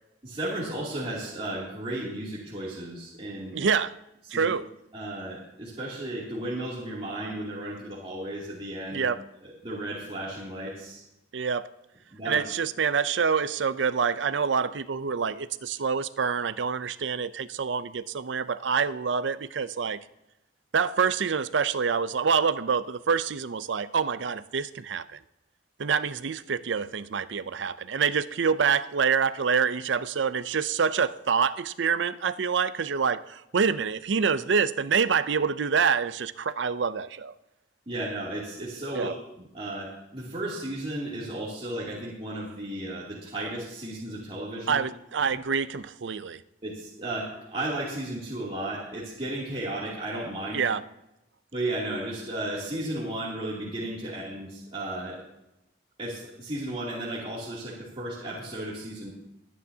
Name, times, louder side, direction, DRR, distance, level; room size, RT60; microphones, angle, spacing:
voice 1, 0.2-3.6 4.3-4.5 4.9-9.1 9.4-11.0 12.1-12.4 37.9-39.1 39.5-44.8 45.2-45.3 46.6-50.6 51.5-55.2 56.0-59.1, right 1 dB, 30° right, 2.8 m, -34 dB
voice 2, 3.5-4.0 4.3-4.7 8.9-9.2 11.3-11.7 12.2-20.0 20.7-25.2 25.8-37.3 38.9-39.1 44.7-46.4 50.5-50.8, right 6 dB, 80° right, 0.5 m, -26 dB
23.5 x 9.4 x 2.8 m
head